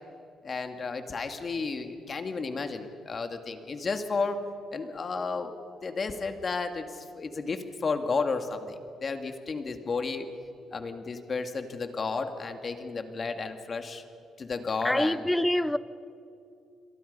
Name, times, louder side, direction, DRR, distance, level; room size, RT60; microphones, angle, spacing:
voice 1, 0.4-4.4 4.7-5.5 5.8-10.3 10.7-14.0 14.4-15.2, left 4 dB, 40° left, 7 dB, 2.1 m, -32 dB
voice 2, 14.8-15.8, left 1 dB, 5° left, 17 dB, 0.7 m, -25 dB
29.0 x 22.5 x 5.5 m, 2.6 s
cardioid pair, 90°, 0 cm